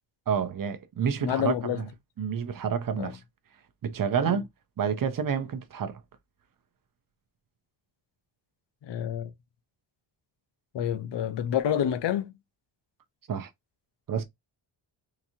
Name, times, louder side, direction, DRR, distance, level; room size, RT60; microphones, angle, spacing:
voice 1, 0.3-1.9 2.2-3.2 3.8-4.5 4.8-6.0 13.3-13.5 14.1-14.2, right 7 dB, 45° right, 0.6 m, -29 dB
voice 2, 1.2-1.8 3.0-3.1 4.2-4.4 8.8-9.3 10.7-12.3, left 9 dB, 60° left, 0.6 m, -28 dB
3.7 x 2.9 x 2.7 m
wide cardioid pair, 165°, 49 cm